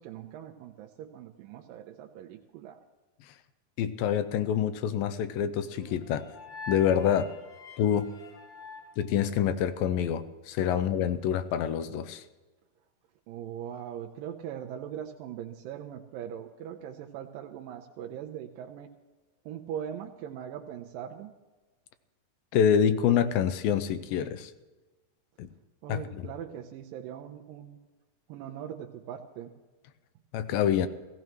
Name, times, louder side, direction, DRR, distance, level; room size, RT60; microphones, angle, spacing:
voice 1, 0.0-2.8 13.3-18.9 19.5-21.3 25.8-27.9 28.3-29.5, right 9 dB, 85° right, 2 dB, 2.3 m, -41 dB
voice 2, 3.8-6.2 6.7-7.3 7.8-8.1 9.0-12.2 22.5-24.5 25.4-25.5 25.9-26.0 30.3-30.9, left 9 dB, 85° left, 12 dB, 2.3 m, -26 dB
sound 1, 5.7-9.9, left 4 dB, 50° left, 1.5 m, -46 dB
16.5 x 16.5 x 3.1 m, 1.2 s
omnidirectional pair, 4.1 m